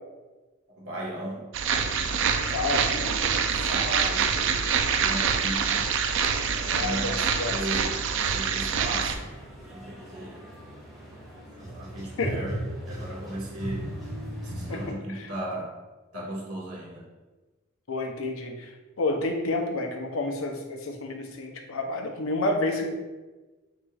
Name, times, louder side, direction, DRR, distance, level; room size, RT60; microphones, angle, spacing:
voice 1, 0.7-1.4 3.3-5.8 6.4-9.3 9.7-10.3 11.5-13.9 14.4-15.7 16.1-17.0, right 1 dB, 85° right, -4 dB, 1.3 m, -37 dB
sound 1, 1.5-9.2, right 6 dB, 60° right, 0.4 m, -26 dB
sound 2, 1.6-14.9, right 1 dB, ahead, 1.5 m, -40 dB
voice 2, 2.5-3.1 6.7-7.6 12.2-12.4 14.7-15.3 17.9-22.9, left 2 dB, 70° left, 3 dB, 0.6 m, -30 dB
4.8 x 3.9 x 2.3 m, 1.2 s
head